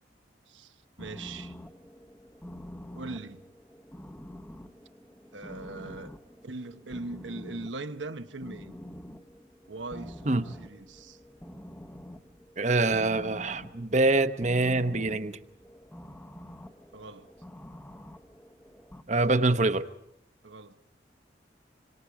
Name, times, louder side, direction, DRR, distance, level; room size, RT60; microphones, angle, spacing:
voice 1, 0.5-1.5 3.0-3.5 5.3-6.2 6.4-8.7 9.7-11.2 16.9-17.3 20.4-20.8, right 2 dB, 90° right, 1.1 m, -40 dB
sound 1, 1.0-19.0, left 1 dB, 10° left, 1.0 m, -47 dB
voice 2, 12.6-15.4 19.1-19.9, right 2 dB, 40° right, 0.9 m, -25 dB
27.5 x 26.0 x 4.9 m
head